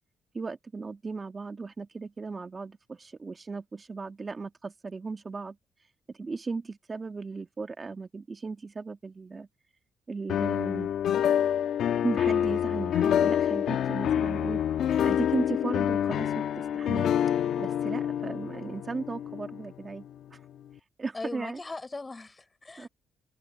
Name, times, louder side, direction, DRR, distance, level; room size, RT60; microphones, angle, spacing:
voice 1, 0.3-5.6 6.2-9.5 10.1-10.9 12.0-14.6 15.0-17.1 17.6-20.1 20.3-20.4 21.0-21.6 22.8-22.9, right 4 dB, 30° right, 1.9 m, -36 dB
sound 1, 10.3-20.2, left 9 dB, 70° left, 1.4 m, -27 dB
voice 2, 21.1-22.9, left 3 dB, 20° left, 5.1 m, -39 dB
cardioid pair, 90°, 0 cm